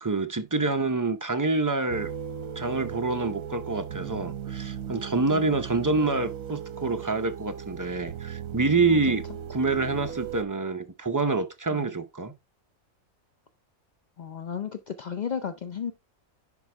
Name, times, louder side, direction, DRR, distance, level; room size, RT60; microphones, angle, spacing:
voice 1, 0.0-2.1 2.6-9.2 9.5-12.3, right 3 dB, 25° right, 0.4 m, -27 dB
sound 1, 1.9-10.4, right 8 dB, 75° right, 1.1 m, -37 dB
voice 2, 14.2-15.9, left 7 dB, 55° left, 0.5 m, -34 dB
10.5 x 4.5 x 3.3 m
omnidirectional pair, 1.5 m